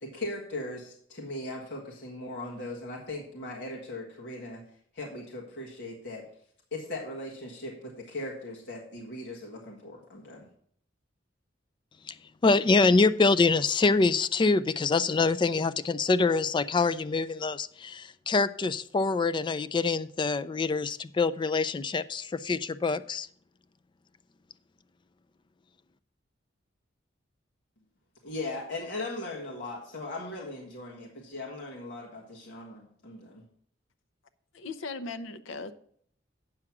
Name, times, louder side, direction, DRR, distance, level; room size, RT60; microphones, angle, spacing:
voice 1, 0.0-4.6 4.9-6.2 6.7-10.5 28.2-33.4, left 2 dB, 60° left, 1.6 m, -38 dB
voice 2, 12.4-23.3, left 3 dB, 25° left, 0.3 m, -25 dB
voice 3, 34.5-35.7, left 3 dB, 80° left, 0.7 m, -38 dB
8.8 x 6.0 x 5.9 m
head